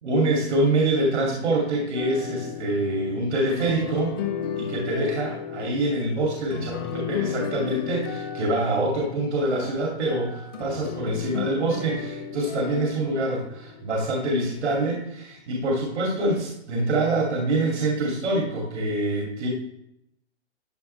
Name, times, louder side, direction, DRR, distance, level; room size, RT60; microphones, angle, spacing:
voice 1, 0.0-4.1 4.6-19.5, right 2 dB, 75° right, -2 dB, 2.7 m, -25 dB
sound 1, 2.0-14.4, left 8 dB, 20° left, 0.6 m, -34 dB
12.5 x 5.6 x 3.3 m, 0.78 s
hypercardioid pair, 170°, 35 cm